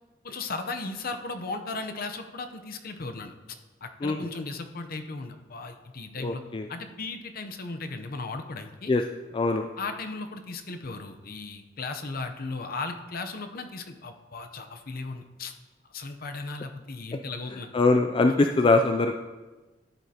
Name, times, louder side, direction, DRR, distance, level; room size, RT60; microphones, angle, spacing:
voice 1, 0.2-3.3 3.8-6.4 6.7-8.9 9.8-15.5 15.9-17.7, left 3 dB, 50° left, 6 dB, 0.7 m, -36 dB
voice 2, 6.2-6.7 8.9-9.0 9.3-9.7 17.7-19.1, left 3 dB, 25° left, 5 dB, 0.3 m, -22 dB
13.5 x 7.9 x 2.9 m, 1.2 s
head